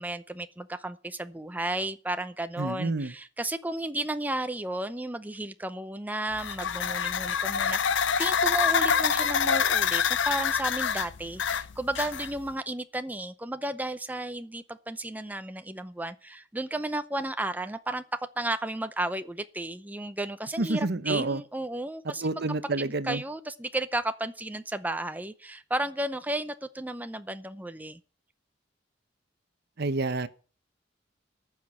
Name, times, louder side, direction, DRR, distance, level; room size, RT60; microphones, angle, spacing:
voice 1, 0.0-18.0 18.4-22.4 22.8-28.0, right 1 dB, 10° right, 0.6 m, -33 dB
voice 2, 2.6-3.1 20.6-21.4 22.2-23.2 29.8-30.3, right 2 dB, 60° right, 0.9 m, -28 dB
sound 1, 6.3-12.5, left 7 dB, 75° left, 0.7 m, -26 dB
14.5 x 6.1 x 8.6 m
head